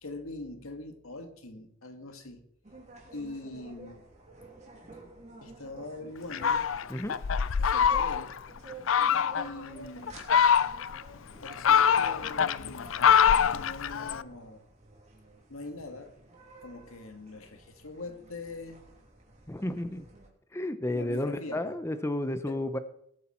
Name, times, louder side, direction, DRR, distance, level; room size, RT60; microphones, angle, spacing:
voice 1, 0.0-2.4 3.1-4.0 5.4-6.7 7.6-8.3 9.4-10.2 11.4-13.0 13.5-14.6 15.5-16.1 16.6-18.8 20.9-21.8 22.5-22.6, left 2 dB, 90° left, 1.9 m, -42 dB
sound 1, 2.6-20.3, right 2 dB, 35° right, 2.9 m, -51 dB
Fowl, 6.3-8.4 8.9-9.5 10.1-11.0 11.4-14.2, left 7 dB, 70° left, 0.5 m, -24 dB
voice 2, 19.5-20.1 20.5-22.8, left 1 dB, 15° left, 0.6 m, -32 dB
19.5 x 8.4 x 4.4 m
head